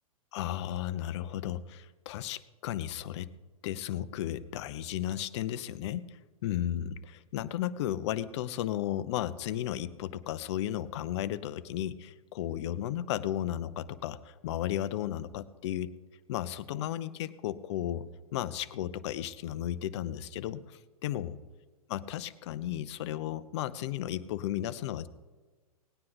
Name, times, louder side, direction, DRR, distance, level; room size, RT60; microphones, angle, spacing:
voice 1, 0.3-3.3 3.6-15.9 16.3-21.3 21.9-25.1, left 12 dB, 50° left, 15 dB, 0.7 m, -34 dB
18.0 x 9.6 x 4.0 m, 1.3 s
hypercardioid pair, 115°, 19 cm